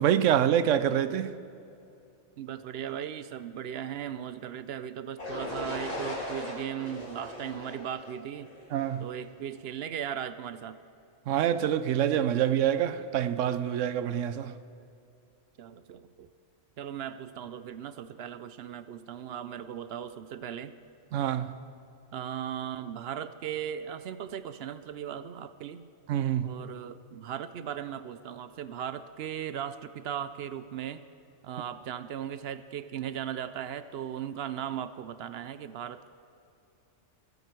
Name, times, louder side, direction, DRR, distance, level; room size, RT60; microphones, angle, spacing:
voice 1, 0.0-1.4 8.7-9.0 11.3-14.6 21.1-21.5 26.1-26.6, right 10 dB, 90° right, 1.0 m, -26 dB
voice 2, 2.4-8.5 9.0-10.8 15.6-16.3 16.8-20.7 22.1-25.9 26.4-31.0 31.4-36.1, right 9 dB, 65° right, 0.7 m, -37 dB
sound 1, 5.2-9.1, left 1 dB, 30° left, 2.4 m, -38 dB
23.0 x 8.1 x 4.5 m
omnidirectional pair, 1.2 m